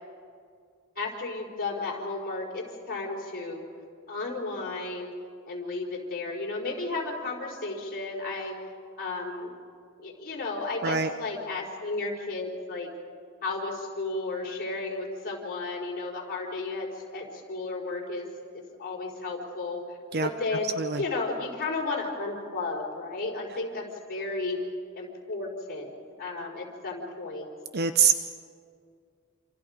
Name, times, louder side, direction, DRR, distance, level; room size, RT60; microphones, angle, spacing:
voice 1, 0.9-3.7 4.1-5.1 5.5-8.6 9.0-9.5 10.0-12.9 13.4-18.3 18.5-19.8 20.2-24.6 24.9-25.9 26.2-27.5, left 3 dB, 45° left, -3 dB, 4.8 m, -33 dB
voice 2, 27.7-28.1, right 6 dB, 50° right, 9 dB, 0.8 m, -24 dB
27.5 x 27.5 x 5.2 m, 2.3 s
head